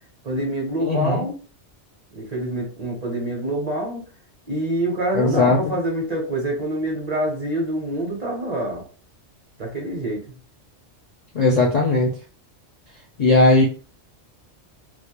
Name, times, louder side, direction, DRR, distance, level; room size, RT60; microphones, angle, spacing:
voice 1, 0.2-1.4 2.1-4.0 4.5-8.8 9.6-10.4, right 1 dB, 40° right, -1 dB, 0.7 m, -26 dB
voice 2, 0.8-1.2 5.1-5.7 11.3-12.1 13.2-13.6, left 2 dB, 50° left, -2 dB, 0.5 m, -18 dB
2.3 x 2.0 x 2.8 m, 0.37 s
omnidirectional pair, 1.2 m